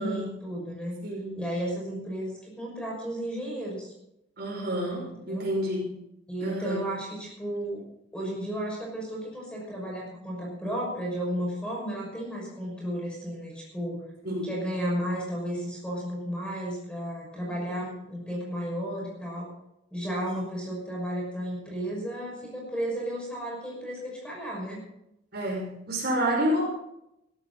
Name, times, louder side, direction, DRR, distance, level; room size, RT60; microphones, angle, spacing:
voice 1, 0.0-1.0 1.3-3.9 5.3-5.5 6.3-7.9 8.1-14.0 14.4-19.5 19.9-24.8, equal, 5° left, -3 dB, 6.1 m, -33 dB
voice 2, 1.0-1.4 4.4-6.0 6.4-6.8 14.2-14.5 17.8-17.9 25.3-26.6, equal, 50° right, -2 dB, 5.8 m, -29 dB
16.5 x 15.0 x 4.2 m, 0.82 s
head